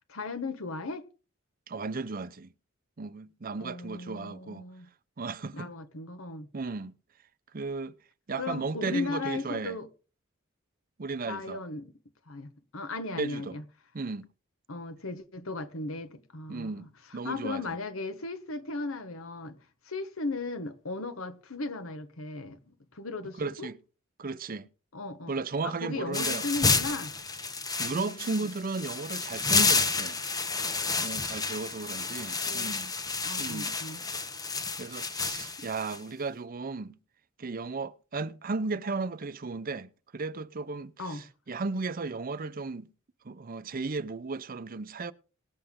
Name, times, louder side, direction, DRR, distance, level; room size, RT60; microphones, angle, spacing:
voice 1, 0.1-1.1 3.6-4.9 5.5-6.5 8.4-9.9 11.2-11.9 12.3-13.6 14.7-19.6 19.9-23.7 24.9-25.3 25.6-27.1 27.9-28.5 32.5-32.8 33.2-34.0 41.0-41.3, left 3 dB, 80° left, 1.4 m, -37 dB
voice 2, 1.7-2.5 3.0-4.6 5.2-5.7 6.5-6.9 7.5-7.9 8.3-9.8 11.0-11.6 13.2-13.6 13.9-14.3 16.5-16.9 17.1-17.8 23.4-23.8 24.2-24.7 25.3-26.4 27.8-30.2 31.0-32.9 33.4-33.8 34.8-37.0 37.4-42.9 43.2-45.1, right 3 dB, 45° right, 0.6 m, -35 dB
sound 1, 26.1-36.0, left 4 dB, 20° left, 1.0 m, -30 dB
19.5 x 7.9 x 3.7 m
head